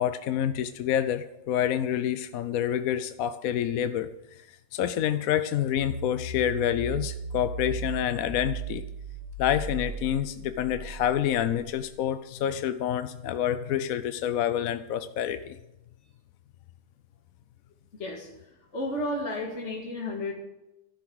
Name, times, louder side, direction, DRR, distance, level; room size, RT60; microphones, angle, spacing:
voice 1, 0.0-4.1 4.5-8.8 9.4-15.6, left 10 dB, 65° left, 11 dB, 1.0 m, -28 dB
sound 1, 5.8-12.0, right 3 dB, 75° right, 1.9 m, -37 dB
voice 2, 18.7-20.3, left 1 dB, 45° left, -2 dB, 2.2 m, -32 dB
12.5 x 11.5 x 6.3 m, 0.92 s
omnidirectional pair, 1.8 m